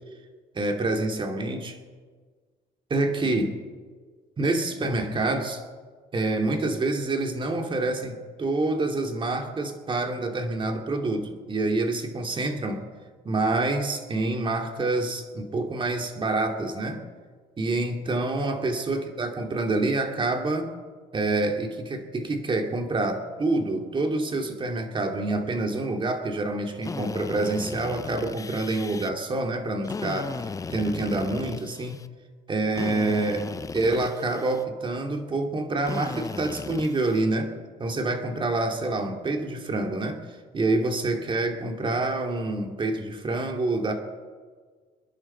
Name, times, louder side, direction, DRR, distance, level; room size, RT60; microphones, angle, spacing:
voice 1, 0.5-1.8 2.9-3.6 4.4-5.6 6.1-12.8 13.2-17.0 17.6-20.7 21.1-32.0 32.5-33.4 33.7-40.2 40.5-43.9, right 2 dB, 30° right, 3 dB, 2.5 m, -27 dB
Drill, 26.8-29.1 29.8-32.1 32.8-34.6 35.8-37.2, left 4 dB, 20° left, 0.5 m, -36 dB
27.5 x 10.5 x 4.5 m, 1.5 s
cardioid pair, 110°, 17 cm